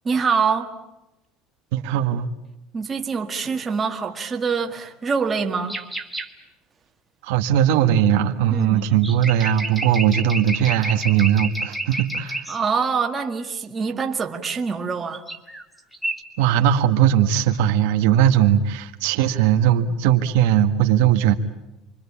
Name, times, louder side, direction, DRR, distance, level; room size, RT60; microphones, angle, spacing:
voice 1, 0.0-0.7 2.7-5.8 8.5-8.9 12.5-15.2, right 5 dB, 20° right, 1.8 m, -25 dB
voice 2, 1.7-2.3 7.2-12.5 16.4-21.3, right 10 dB, 85° right, 1.8 m, -19 dB
sound 1, 5.7-6.3 8.9-12.6 15.1-15.6 15.9-16.2, right 1 dB, 5° left, 2.1 m, -30 dB
28.5 x 23.5 x 8.7 m
cardioid pair, 165°, 0 cm